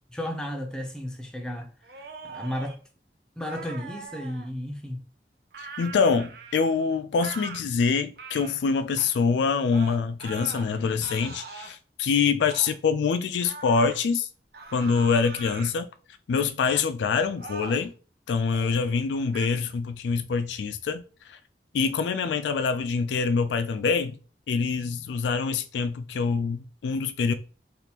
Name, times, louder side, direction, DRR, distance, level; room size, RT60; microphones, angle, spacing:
voice 1, 0.1-2.8 3.4-5.0, equal, 5° left, 0.6 m, -34 dB
sound 1, 1.8-2.8 3.4-4.5 5.5-6.8 7.2-7.6 8.2-8.6 9.0-9.1 9.7-10.7 11.0-11.8 12.5-12.7 13.4-14.0 14.5-15.7 16.6-16.9 17.3-17.9 18.4-18.8 19.3-19.5, right 4 dB, 60° right, 0.5 m, -42 dB
voice 2, 5.6-14.3 14.7-15.9 16.3-17.9 18.3-21.0 21.3-21.4 21.7-24.2 24.5-27.3, left 5 dB, 80° left, 0.3 m, -25 dB
3.5 x 2.5 x 2.8 m
head